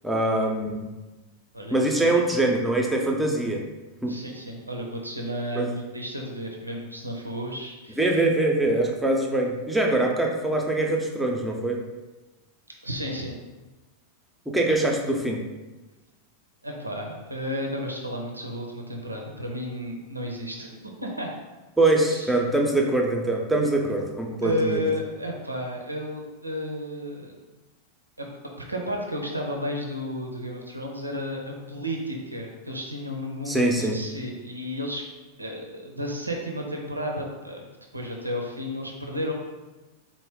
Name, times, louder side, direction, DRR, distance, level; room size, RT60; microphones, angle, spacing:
voice 1, 0.0-0.9 1.7-3.6 4.0-4.1 5.6-5.7 8.0-11.8 14.5-15.4 21.8-24.8 33.5-34.0, right 2 dB, 5° right, 0 dB, 0.6 m, -23 dB
voice 2, 1.5-2.1 4.1-8.2 12.8-13.3 16.6-21.3 22.1-22.3 24.4-27.3 28.2-28.3 28.7-35.0 35.4-37.7 37.9-39.3, equal, 85° right, 0 dB, 0.5 m, -32 dB
4.3 x 2.1 x 3.5 m, 1.2 s
figure-of-eight pair, 90°, 0 cm